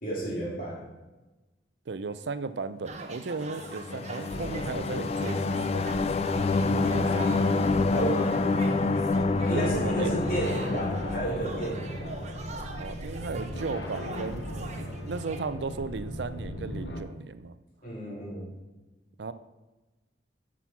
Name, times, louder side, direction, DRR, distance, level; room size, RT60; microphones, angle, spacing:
voice 1, 0.0-0.9 7.9-8.4 9.5-12.2 17.8-18.5, right 1 dB, 50° left, -5 dB, 3.6 m, -32 dB
voice 2, 1.9-5.9 6.7-7.5 9.5-10.1 12.8-17.6 19.2-19.3, right 4 dB, 80° right, 13 dB, 0.5 m, -35 dB
sound 1, 2.9-15.5, right 3 dB, 40° right, 1.0 m, -44 dB
sound 2, 3.6-12.3, left 3 dB, 35° left, 0.4 m, -28 dB
sound 3, 4.3-17.0, equal, 80° left, 1.2 m, -38 dB
8.1 x 6.2 x 5.8 m, 1.1 s
head